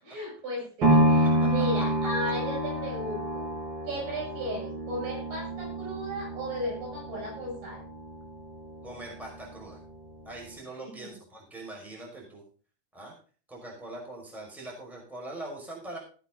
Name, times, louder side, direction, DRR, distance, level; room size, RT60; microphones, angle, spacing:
voice 1, 0.0-3.5 3.9-7.8 10.8-11.2, equal, 70° right, -1 dB, 8.9 m, -35 dB
sound 1, 0.8-8.9 9.4-9.5, right 1 dB, 30° right, 3.0 m, -28 dB
voice 2, 8.8-9.8 10.2-12.4 12.9-13.1 13.5-16.0, right 1 dB, ahead, -2 dB, 4.8 m, -42 dB
16.5 x 9.2 x 3.9 m, 0.39 s
omnidirectional pair, 4.7 m